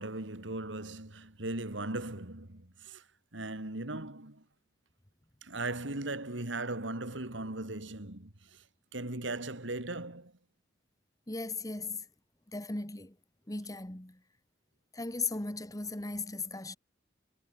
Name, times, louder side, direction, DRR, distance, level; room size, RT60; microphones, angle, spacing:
voice 1, 0.0-3.1 3.3-4.4 5.4-8.6 8.9-10.3, right 2 dB, 80° right, 3.2 m, -38 dB
voice 2, 11.3-12.0 12.5-13.1 13.5-14.2 14.9-16.8, left 3 dB, 20° left, 1.8 m, -37 dB
head